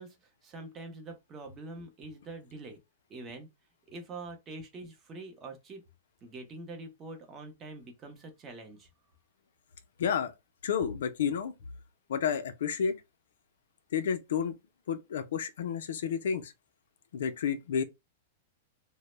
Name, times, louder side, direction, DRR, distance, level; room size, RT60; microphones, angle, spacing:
voice 1, 0.0-2.8 3.1-3.5 3.9-5.9 6.2-8.9, right 2 dB, 20° right, 0.5 m, -45 dB
voice 2, 10.0-10.3 10.6-11.5 12.1-13.0 13.9-14.5 14.9-16.5 17.1-17.8, left 7 dB, 75° left, 0.4 m, -30 dB
2.0 x 2.0 x 3.0 m
supercardioid pair, 165°, 0 cm